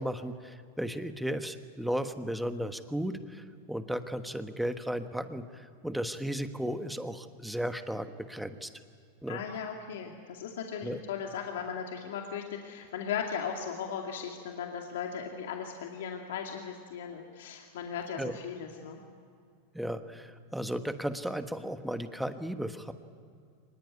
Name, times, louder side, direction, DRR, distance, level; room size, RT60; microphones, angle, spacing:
voice 1, 0.0-8.7 9.2-9.4 10.8-11.0 18.2-18.4 19.7-22.9, equal, ahead, 8 dB, 1.3 m, -35 dB
voice 2, 9.3-19.0, left 7 dB, 80° left, 2 dB, 2.4 m, -37 dB
24.0 x 20.5 x 9.7 m, 2.3 s
supercardioid pair, 135°, 0 cm